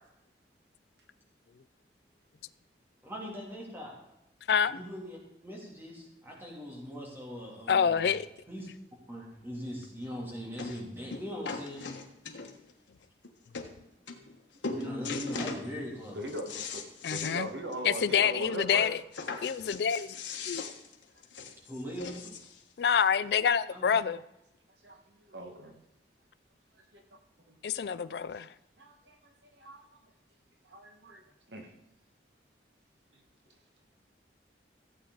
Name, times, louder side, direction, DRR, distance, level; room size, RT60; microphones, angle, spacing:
voice 1, 3.0-3.9 4.7-5.2 5.4-8.1 8.5-8.7 9.1-11.9 14.6-16.2 21.7-22.2 23.7-23.9, equal, 10° right, -2 dB, 2.9 m, -40 dB
voice 2, 4.5-4.8 7.7-8.3 17.0-17.5 17.8-19.0 19.4-20.2 20.5-20.6 22.8-24.2 27.6-28.5, left 7 dB, 65° left, 15 dB, 0.4 m, -27 dB
sound 1, 9.8-9.9 10.6-10.8 11.1-12.7 13.2-13.3 13.5-13.7 14.1-14.4 14.6-15.6 16.1-17.4 17.7-17.8 18.1-18.2 19.1-22.6 23.4-23.5, left 4 dB, 90° left, 1.4 m, -39 dB
voice 3, 16.1-16.8 17.1-18.9 23.5-23.6 24.0-24.1 24.8-25.7 26.9-27.0 27.5-27.6 27.9-28.1 28.8-29.8 30.6-31.2 31.5-31.7 33.1-33.2, right 1 dB, 75° right, 3 dB, 1.6 m, -41 dB
15.0 x 8.4 x 4.0 m, 0.89 s
head